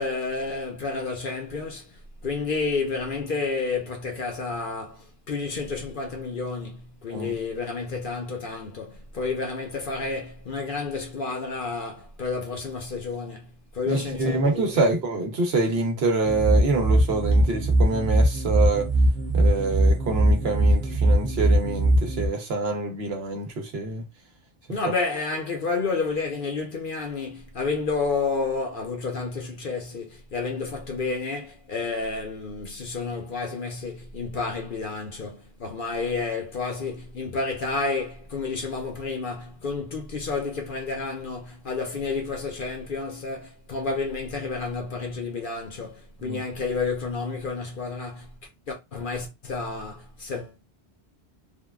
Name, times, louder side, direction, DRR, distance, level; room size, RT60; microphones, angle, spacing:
voice 1, 0.0-14.9 24.7-48.3 48.7-50.6, left 4 dB, 50° left, 0.9 m, -30 dB
voice 2, 13.9-18.9 19.3-24.0 46.2-46.4, right 3 dB, 65° right, 1.0 m, -26 dB
sound 1, 16.2-22.3, right 1 dB, 85° right, 1.0 m, -21 dB
3.6 x 2.2 x 2.3 m
omnidirectional pair, 1.1 m